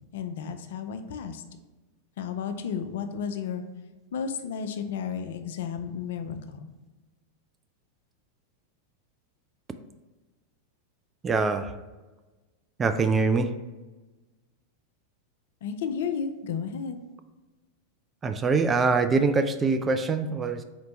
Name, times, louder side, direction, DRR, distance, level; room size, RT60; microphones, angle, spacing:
voice 1, 0.1-1.4 2.2-3.6 4.1-6.7 15.6-17.0, left 7 dB, 60° left, 7 dB, 0.4 m, -33 dB
voice 2, 11.2-11.7 12.8-13.5 18.2-20.6, right 4 dB, 20° right, 9 dB, 0.3 m, -24 dB
4.3 x 2.6 x 4.1 m, 1.2 s
figure-of-eight pair, 90°, 0 cm